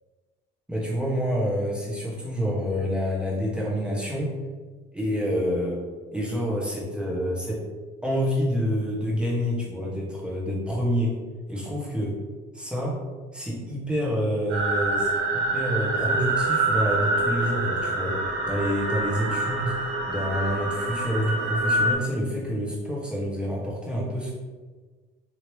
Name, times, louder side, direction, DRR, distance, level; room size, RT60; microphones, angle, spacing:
voice 1, 0.7-4.3 4.9-5.8 6.1-7.6 8.0-11.1 11.5-12.2 12.5-13.0 13.3-15.1 15.3-18.2 18.5-19.7 20.1-24.3, equal, 5° right, -5 dB, 0.9 m, -27 dB
sound 1, 14.5-21.9, right 2 dB, 80° right, 0.9 m, -26 dB
3.1 x 2.7 x 3.1 m, 1.4 s
cardioid pair, 115°, 20 cm